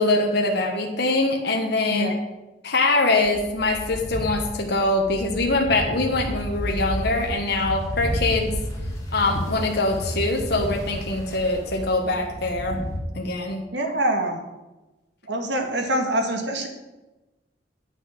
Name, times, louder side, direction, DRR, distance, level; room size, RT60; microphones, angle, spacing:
voice 1, 0.0-2.1 2.6-8.5 9.1-12.8 13.1-13.6, left 2 dB, 65° left, 1 dB, 1.3 m, -23 dB
sound 1, 3.2-13.0, equal, 20° left, 2.4 m, -32 dB
voice 2, 13.7-14.4 15.2-16.7, right 1 dB, 75° right, 3 dB, 1.8 m, -25 dB
9.5 x 5.7 x 7.5 m, 1.1 s
head